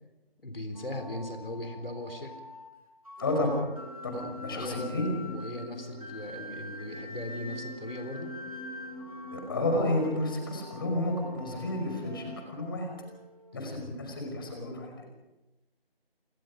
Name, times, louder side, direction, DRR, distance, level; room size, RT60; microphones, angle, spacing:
voice 1, 0.4-2.3 4.1-8.3 13.5-13.9, left 1 dB, 65° left, 6 dB, 3.9 m, -39 dB
sound 1, 0.8-13.6, left 1 dB, 35° right, 2.2 m, -47 dB
voice 2, 3.2-3.6 4.0-5.1 9.3-12.9 13.5-15.1, left 1 dB, 20° left, 2 dB, 5.3 m, -31 dB
sound 2, 3.2-12.4, left 1 dB, 15° right, 3.6 m, -45 dB
28.5 x 23.5 x 5.1 m, 1.0 s
figure-of-eight pair, 165°, 30 cm